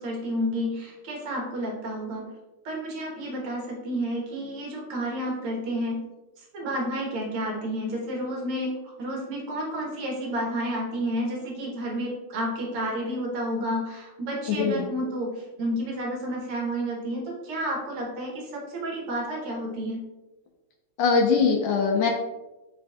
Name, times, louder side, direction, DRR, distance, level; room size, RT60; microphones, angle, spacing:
voice 1, 0.0-2.3 2.7-6.0 6.4-20.0, equal, 85° right, -2 dB, 2.0 m, -30 dB
voice 2, 14.5-14.8 21.0-22.1, left 5 dB, 75° left, 2 dB, 1.1 m, -22 dB
5.9 x 3.4 x 2.3 m, 1.0 s
omnidirectional pair, 2.3 m